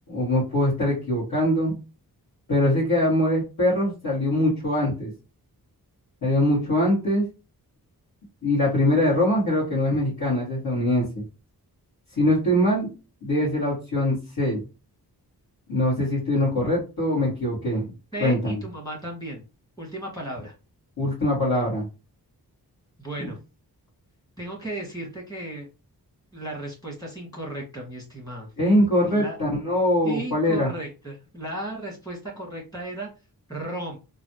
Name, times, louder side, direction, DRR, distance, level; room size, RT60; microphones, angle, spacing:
voice 1, 0.1-1.7 2.5-5.1 6.2-7.2 8.4-11.0 12.2-12.9 13.2-14.6 15.7-17.8 18.2-18.6 21.0-21.8 23.2-23.3 28.6-30.7, left 1 dB, 60° left, -9 dB, 1.8 m, -22 dB
voice 2, 18.1-19.4 19.8-20.5 23.0-23.4 24.4-25.7 26.3-28.5 29.1-29.4 30.0-33.1 33.5-34.0, right 1 dB, 10° left, -2 dB, 1.5 m, -35 dB
3.1 x 2.5 x 2.8 m, 0.30 s
wide cardioid pair, 160°, 38 cm